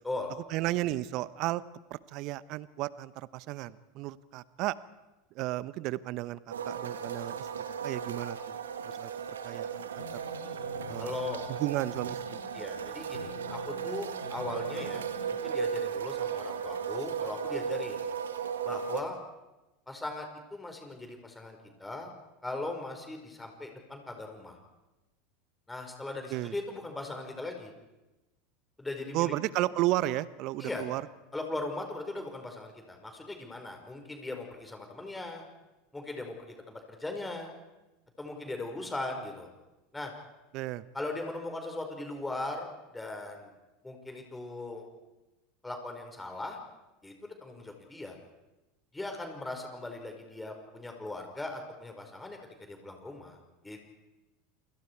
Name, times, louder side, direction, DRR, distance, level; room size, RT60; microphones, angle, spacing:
voice 1, 0.5-1.6 1.9-4.8 5.3-7.5 7.8-8.4 8.8-9.1 9.4-10.2 10.9-11.2 11.5-12.4 26.3-26.5 29.1-31.0 40.5-40.8, right 16 dB, 50° right, 17 dB, 0.9 m, -33 dB
sound 1, 6.5-19.0, right 7 dB, 80° right, 1.9 m, -36 dB
sound 2, 10.0-15.3, left 4 dB, 85° left, 3.4 m, -47 dB
voice 2, 11.0-11.4 12.5-18.0 18.6-19.2 19.9-22.1 22.4-24.6 25.7-27.7 28.8-29.3 30.6-30.8 31.3-35.4 35.9-37.5 38.2-39.5 39.9-40.1 40.9-42.7 42.9-43.5 43.8-44.9 45.6-46.6 47.0-48.1 48.9-52.4 52.7-53.4 53.6-53.9, left 2 dB, 10° left, 3 dB, 4.9 m, -39 dB
29.0 x 27.5 x 4.7 m, 1.1 s
figure-of-eight pair, 80°, 0 cm